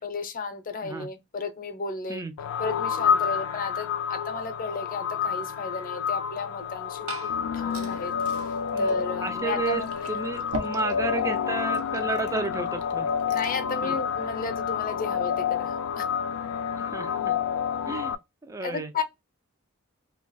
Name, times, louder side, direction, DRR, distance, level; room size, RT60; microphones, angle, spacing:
voice 1, 0.0-2.2 2.6-8.1 8.4-10.2 13.3-16.1 18.6-19.0, left 4 dB, 40° left, 0.6 m, -34 dB
sound 1, 2.4-18.1, left 7 dB, 80° left, 0.3 m, -29 dB
Liquid, 6.6-13.7, equal, 75° right, 0.7 m, -42 dB
voice 2, 8.7-9.8 10.1-13.1 13.8-13.9 16.7-17.4 17.9-18.9, right 3 dB, 15° right, 0.3 m, -32 dB
2.9 x 2.3 x 3.9 m
head